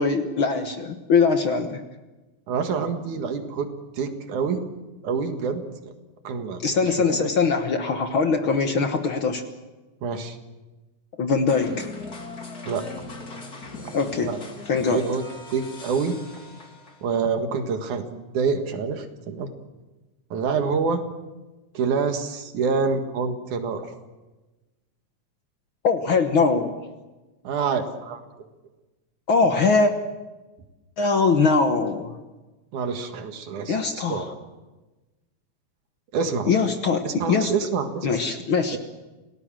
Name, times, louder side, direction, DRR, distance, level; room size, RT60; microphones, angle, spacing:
voice 1, 0.0-1.8 6.6-9.4 11.2-11.9 13.9-14.3 14.7-15.0 25.8-26.8 29.3-29.9 31.0-32.2 33.7-34.3 36.5-37.5 38.0-38.8, left 4 dB, 55° left, 6 dB, 1.7 m, -22 dB
voice 2, 2.5-3.7 4.0-4.6 5.0-5.9 6.2-6.6 7.1-7.3 10.0-10.4 12.7-12.9 14.2-14.4 14.9-15.2 15.5-16.2 17.0-19.5 20.3-21.0 21.7-23.9 27.4-28.2 32.7-33.8 34.1-34.3 36.1-36.5 37.0-38.1, right 5 dB, 80° right, 6 dB, 3.2 m, -26 dB
sound 1, 11.5-17.1, left 3 dB, 30° left, 3.1 m, -39 dB
27.5 x 18.0 x 7.5 m, 1.1 s
omnidirectional pair, 3.5 m